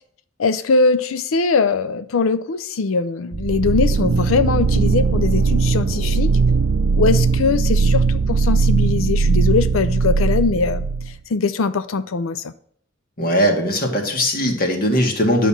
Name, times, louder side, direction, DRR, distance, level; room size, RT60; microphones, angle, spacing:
voice 1, 0.4-6.3 7.0-12.5, left 4 dB, 90° left, 0.5 m, -21 dB
sound 1, 3.3-11.2, right 4 dB, 75° right, 0.5 m, -18 dB
voice 2, 13.2-15.5, equal, 50° left, 1.8 m, -19 dB
10.0 x 4.1 x 7.2 m
head